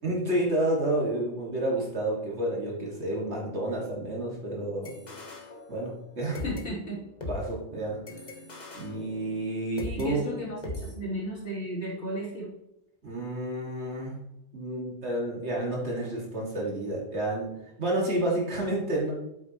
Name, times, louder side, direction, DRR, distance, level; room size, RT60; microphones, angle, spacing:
voice 1, 0.0-4.9 5.7-6.4 7.3-8.0 8.7-10.2 13.0-14.1 14.5-19.1, right 1 dB, 70° right, -3 dB, 2.7 m, -30 dB
sound 1, 4.8-6.1 6.3-10.1 10.6-10.9, left 2 dB, 40° left, 1.3 m, -40 dB
voice 2, 6.4-7.0 9.8-12.5, equal, 85° left, -5 dB, 3.2 m, -34 dB
8.5 x 8.4 x 3.1 m, 0.88 s
omnidirectional pair, 1.2 m